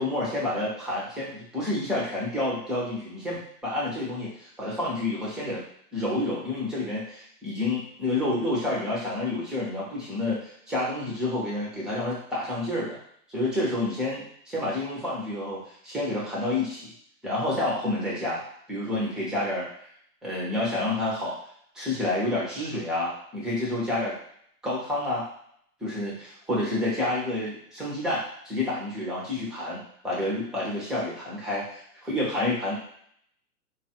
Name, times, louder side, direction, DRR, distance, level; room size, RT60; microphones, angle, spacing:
voice 1, 0.0-5.6 5.9-13.0 13.3-16.9 17.2-18.4 18.7-19.7 20.2-21.3 21.7-24.1 24.6-25.2 25.8-32.8, left 2 dB, ahead, -6 dB, 0.6 m, -29 dB
3.9 x 2.3 x 2.8 m, 0.65 s
hypercardioid pair, 120°, 49 cm